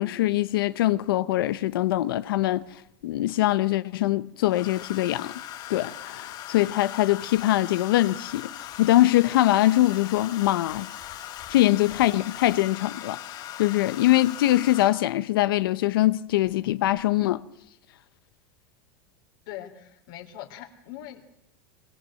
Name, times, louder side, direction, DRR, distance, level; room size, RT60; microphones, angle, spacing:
voice 1, 0.0-5.3 5.7-10.9 11.5-13.2 13.6-17.4, left 15 dB, 85° left, 1.1 m, -23 dB
Domestic sounds home sounds, 2.7-3.0 4.5-15.2 16.4-16.7 17.0-17.3, left 11 dB, 35° left, 1.5 m, -40 dB
voice 2, 19.5-21.4, left 12 dB, 70° left, 3.4 m, -41 dB
24.0 x 23.5 x 7.8 m
supercardioid pair, 145°, 12 cm